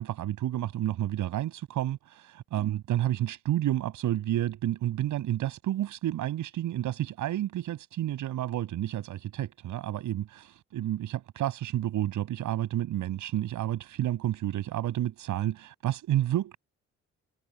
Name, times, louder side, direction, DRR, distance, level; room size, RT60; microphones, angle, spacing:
voice 1, 0.0-2.0 2.5-16.6, right 13 dB, 80° right, 6.9 m, -30 dB
cardioid pair, 90°, 30 cm